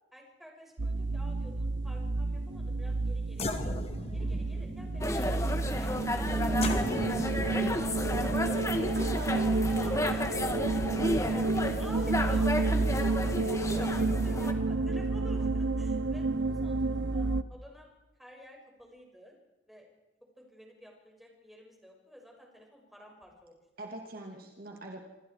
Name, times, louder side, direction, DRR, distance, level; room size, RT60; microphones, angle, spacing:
voice 1, 0.1-3.8 4.1-7.7 8.3-10.3 11.0-13.0 13.4-17.9 18.2-19.4 19.7-19.9 20.4-23.9, equal, ahead, -1 dB, 6.8 m, -51 dB
sound 1, 0.8-17.4, right 3 dB, 75° right, 0.9 m, -30 dB
sound 2, 2.9-3.0 3.3-10.2, left 2 dB, 30° left, 2.3 m, -39 dB
sound 3, 5.0-14.5, left 1 dB, 15° left, 1.7 m, -32 dB
voice 2, 8.1-9.4 23.8-25.0, right 1 dB, 50° right, 1 dB, 2.8 m, -43 dB
28.0 x 27.0 x 4.9 m, 1.1 s
head